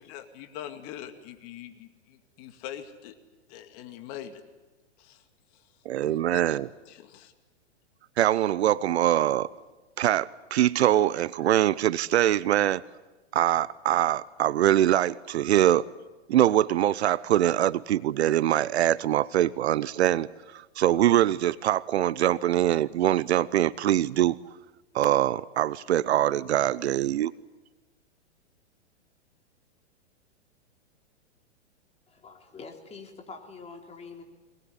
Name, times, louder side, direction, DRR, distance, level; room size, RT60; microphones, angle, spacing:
voice 1, 0.0-3.1 3.5-4.4 5.0-5.2 6.0-6.6 6.9-7.3, left 10 dB, 40° left, 2.3 m, -43 dB
voice 2, 5.8-6.7 8.2-9.5 10.0-12.8 13.3-15.8 16.3-20.3 20.5-24.4 24.9-27.3, right 12 dB, 65° right, 0.8 m, -23 dB
voice 3, 32.1-34.2, left 4 dB, 20° left, 3.6 m, -45 dB
22.5 x 20.0 x 10.0 m
hypercardioid pair, 120°, 35 cm